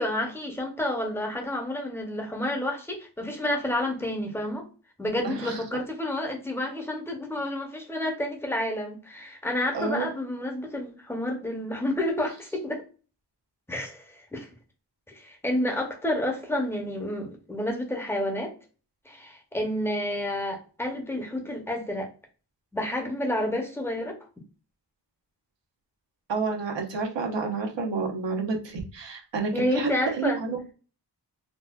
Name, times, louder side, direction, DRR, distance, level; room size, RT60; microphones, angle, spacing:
voice 1, 0.0-4.7 5.0-12.8 13.7-14.5 15.1-18.5 19.1-22.1 22.7-24.2 29.5-30.4, left 1 dB, 5° left, 1 dB, 0.6 m, -30 dB
voice 2, 5.2-5.6 9.7-10.1 26.3-30.7, right 4 dB, 85° right, 2 dB, 0.9 m, -29 dB
4.0 x 2.2 x 2.2 m, 0.36 s
wide cardioid pair, 165°, 42 cm